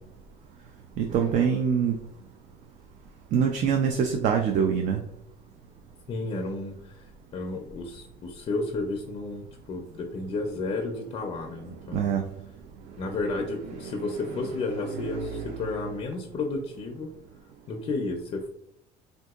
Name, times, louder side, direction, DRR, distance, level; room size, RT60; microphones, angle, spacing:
voice 1, 1.0-2.0 3.3-5.0 11.9-12.2 13.1-13.2 14.0-14.1 14.8-15.4, right 7 dB, 55° right, 4 dB, 0.4 m, -25 dB
voice 2, 6.1-12.2 13.0-17.1 17.7-18.5, left 3 dB, 35° left, 2 dB, 0.4 m, -32 dB
3.5 x 2.7 x 2.3 m, 0.74 s
cardioid pair, 130°, 15 cm